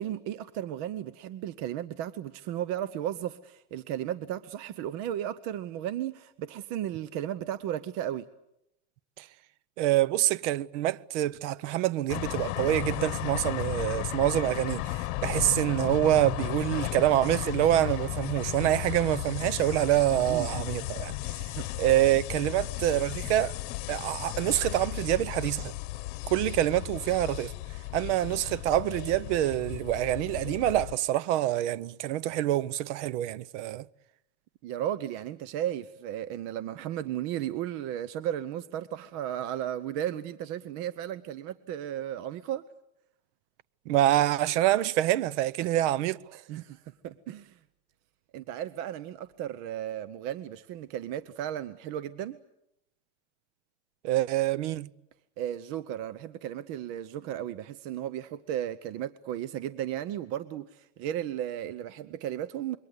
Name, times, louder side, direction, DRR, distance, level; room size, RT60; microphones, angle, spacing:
voice 1, 0.0-8.2 20.3-20.5 21.4-21.7 34.6-42.6 45.6-45.7 46.5-47.6 48.3-52.4 55.4-62.8, right 11 dB, 50° right, 0.9 m, -35 dB
voice 2, 9.8-21.4 21.8-23.6 23.9-25.7 26.3-27.5 27.9-33.9 43.9-46.4 54.0-54.9, right 14 dB, 75° right, 0.9 m, -26 dB
sound 1, 12.1-31.0, left 17 dB, 55° left, 1.3 m, -35 dB
27.0 x 23.0 x 8.1 m
supercardioid pair, 160°, 35 cm